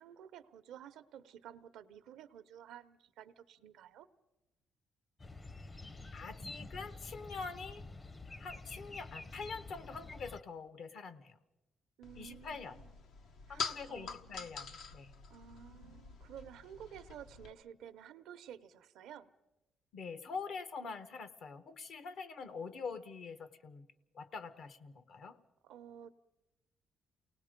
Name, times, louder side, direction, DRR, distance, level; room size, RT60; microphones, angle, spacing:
voice 1, 0.0-4.1 12.0-13.1 13.5-14.1 15.3-19.3 25.6-26.1, right 9 dB, 85° right, 12 dB, 0.7 m, -52 dB
sound 1, 5.2-10.4, left 2 dB, 25° left, 0.7 m, -48 dB
voice 2, 6.1-7.8 8.4-11.4 12.2-12.8 13.5-15.1 15.7-16.0 19.9-23.9 24.1-25.4, left 4 dB, 65° left, 12 dB, 1.1 m, -45 dB
sound 2, 12.0-17.5, left 5 dB, 85° left, 1.2 m, -45 dB
29.0 x 18.5 x 5.1 m, 0.99 s
cardioid pair, 90°, 0 cm